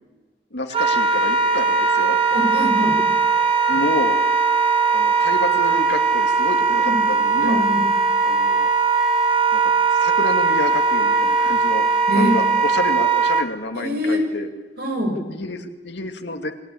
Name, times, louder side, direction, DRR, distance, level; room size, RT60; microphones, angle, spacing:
voice 1, 0.5-2.2 3.7-4.2 4.9-7.7 8.2-8.7 9.5-14.5 15.3-16.5, left 2 dB, 75° left, 6 dB, 2.4 m, -29 dB
Wind instrument woodwind instrument, 0.7-13.5, right 4 dB, 35° right, 2.6 m, -19 dB
voice 2, 2.3-3.0 6.8-7.0 7.4-7.9 12.1-12.4 13.7-14.2 14.8-15.2, equal, 60° right, 3 dB, 6.1 m, -23 dB
28.0 x 21.5 x 8.6 m, 1.3 s
head